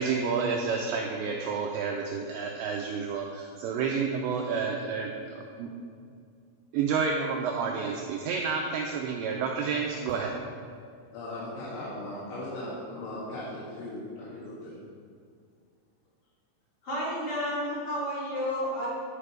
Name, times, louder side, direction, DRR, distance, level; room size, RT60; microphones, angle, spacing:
voice 1, 0.0-5.7 6.7-10.3, right 5 dB, 90° right, 1 dB, 2.5 m, -30 dB
voice 2, 11.1-13.4 13.7-14.7, left 1 dB, 75° left, -9 dB, 4.4 m, -38 dB
voice 3, 16.8-18.9, equal, 35° left, -7 dB, 2.6 m, -31 dB
11.0 x 6.7 x 5.0 m, 2.2 s
omnidirectional pair, 5.8 m